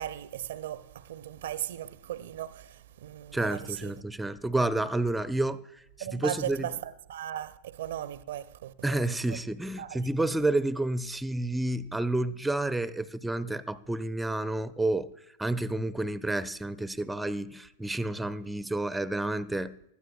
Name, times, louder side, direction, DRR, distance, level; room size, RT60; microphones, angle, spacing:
voice 1, 0.0-4.0 6.0-9.4 9.8-10.1, right 11 dB, 60° right, 0.5 m, -37 dB
voice 2, 3.3-5.8 6.1-6.7 8.8-15.1 15.4-19.7, right 2 dB, 5° right, 0.4 m, -30 dB
19.5 x 12.5 x 2.2 m
figure-of-eight pair, 90°, 0 cm